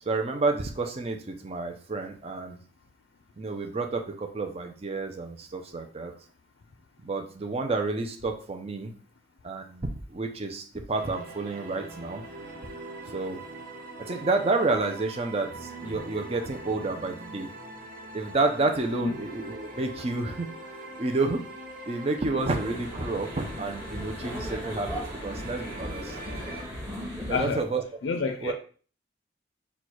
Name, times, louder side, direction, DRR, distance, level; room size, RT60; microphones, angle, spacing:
voice 1, 0.0-2.6 3.4-6.1 7.0-8.9 9.4-12.3 13.1-13.4 14.0-17.5 18.1-21.5 21.9-26.2 27.3-27.8 28.4-28.5, right 3 dB, 35° right, 4 dB, 0.6 m, -30 dB
sound 1, 10.9-26.6, right 2 dB, 50° right, 0.9 m, -42 dB
sound 2, 22.4-27.4, equal, 15° right, 1.8 m, -37 dB
voice 2, 27.3-27.6 28.0-28.5, left 5 dB, 85° left, 5 dB, 0.4 m, -28 dB
4.4 x 2.3 x 4.5 m, 0.41 s
head